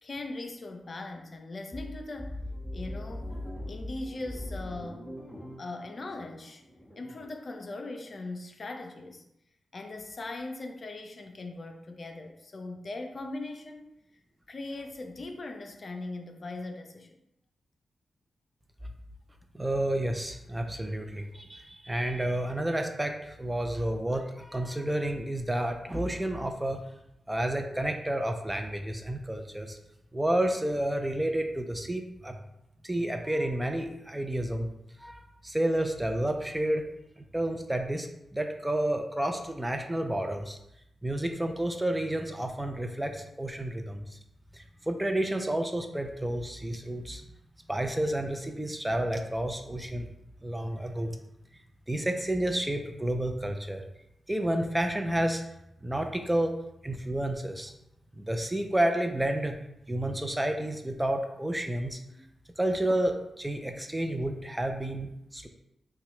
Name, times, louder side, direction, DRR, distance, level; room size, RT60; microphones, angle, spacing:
voice 1, 0.0-2.4 2.7-3.4 3.7-5.1 5.6-6.6 7.0-9.2 9.7-13.9 14.5-17.1 62.1-62.2, left 2 dB, 55° left, 4 dB, 0.5 m, -40 dB
sound 1, 1.7-7.4, left 1 dB, 5° left, 1.0 m, -40 dB
voice 2, 19.5-26.8 27.3-29.8 30.1-32.4 32.8-34.7 35.0-36.8 37.2-40.6 41.0-44.2 44.5-47.2 47.7-50.1 50.4-51.2 51.9-53.8 54.3-55.4 55.8-56.5 56.8-57.7 58.2-59.5 59.9-62.0 62.6-65.5, right 1 dB, 15° right, 5 dB, 0.6 m, -30 dB
5.6 x 2.3 x 3.1 m, 0.81 s
supercardioid pair, 45°, 0 cm